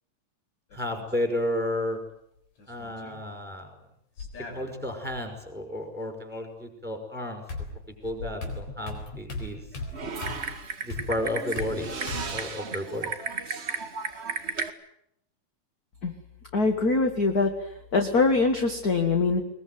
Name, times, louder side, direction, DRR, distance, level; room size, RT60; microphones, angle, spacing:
sound 1, 0.7-1.3 2.6-3.2 4.2-5.2 6.9-7.0 7.5-12.5, left 3 dB, 60° left, 5.4 m, -38 dB
voice 1, 0.7-2.0 2.7-3.7 4.4-7.4 8.0-9.6 10.8-11.9 12.3-13.1, left 1 dB, 5° right, 5 dB, 5.3 m, -32 dB
Typing, 9.9-14.7, right 4 dB, 45° right, 0.8 m, -34 dB
voice 2, 16.5-17.5 17.9-19.4, left 3 dB, 35° left, 5 dB, 1.6 m, -23 dB
21.5 x 21.5 x 9.5 m, 0.75 s
omnidirectional pair, 3.7 m